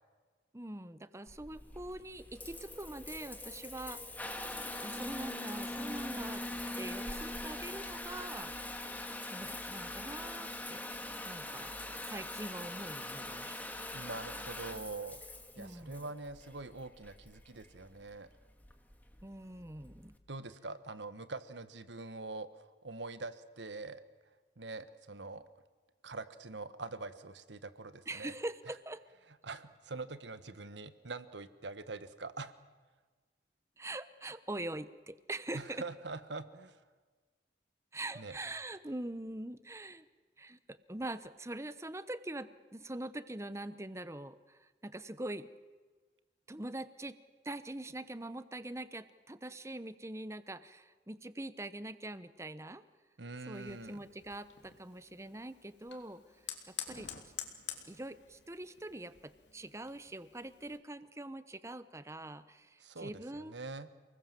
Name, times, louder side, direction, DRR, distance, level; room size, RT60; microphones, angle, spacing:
voice 1, 0.5-4.0 4.8-6.4 6.8-8.5 9.3-10.9 11.3-11.7 12.1-13.5 15.6-16.0 19.2-20.1 28.1-29.0 33.8-35.8 37.9-40.1 40.4-45.5 46.5-47.2 47.4-52.8 53.5-56.2 56.7-57.1 57.9-63.5, right 1 dB, 15° right, 14 dB, 0.9 m, -43 dB
Water tap faucet / Bathtub (filling or washing) / Trickle dribble, 1.3-20.2, left 1 dB, 10° left, 1.7 m, -43 dB
voice 2, 13.9-15.2 15.6-18.3 20.3-24.0 24.6-25.4 26.0-28.3 29.4-32.5 35.5-36.8 38.1-38.4 53.2-54.0 62.8-63.9, right 3 dB, 85° right, 12 dB, 1.4 m, -44 dB
Fire, 53.5-60.8, left 9 dB, 85° left, 3.2 m, -49 dB
29.5 x 20.5 x 7.6 m, 1.4 s
head